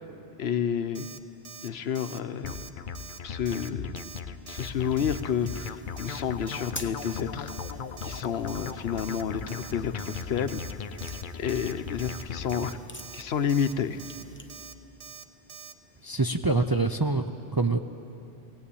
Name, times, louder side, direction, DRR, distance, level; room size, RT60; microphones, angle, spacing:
voice 1, 0.4-1.1 1.6-2.7 3.2-4.1 4.5-7.5 8.0-10.6 11.0-12.8 13.1-14.0, left 7 dB, 75° left, 10 dB, 1.0 m, -30 dB
Alarm, 0.9-1.2 1.4-1.7 1.9-2.2 2.5-2.7 2.9-3.2 3.4-3.7 4.0-4.2 4.5-4.7 5.0-5.2 5.5-5.7 6.0-6.2 6.5-6.7 7.0-7.2 7.5-7.7 8.0-8.2 8.5-8.7 9.0-9.2 9.5-9.7 10.0-10.2 10.5-10.7 11.0-11.2 11.5-11.7 12.0-12.2 12.5-12.7 13.0-13.2 13.5-13.7 14.0-14.2 14.5-14.7 15.0-15.2 15.5-15.7, right 8 dB, 75° right, 1.0 m, -45 dB
sound 1, 2.4-12.8, left 6 dB, 55° left, 0.8 m, -38 dB
sound 2, 4.5-14.7, left 2 dB, 10° left, 0.7 m, -48 dB
voice 2, 16.0-17.2 17.5-17.8, right 3 dB, 30° right, 6 dB, 0.5 m, -25 dB
19.5 x 18.0 x 8.5 m, 2.8 s
omnidirectional pair, 1.1 m